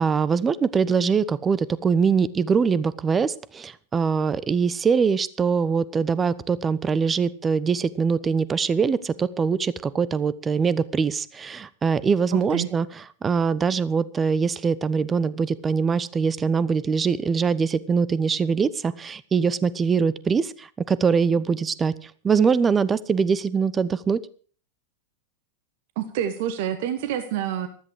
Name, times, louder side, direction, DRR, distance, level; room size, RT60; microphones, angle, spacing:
voice 1, 0.0-12.9 13.2-24.2, right 5 dB, 20° right, 19 dB, 0.9 m, -23 dB
voice 2, 12.3-12.7 25.9-27.7, right 10 dB, 50° right, 11 dB, 1.4 m, -27 dB
15.0 x 13.5 x 4.8 m, 0.42 s
figure-of-eight pair, 90°, 0 cm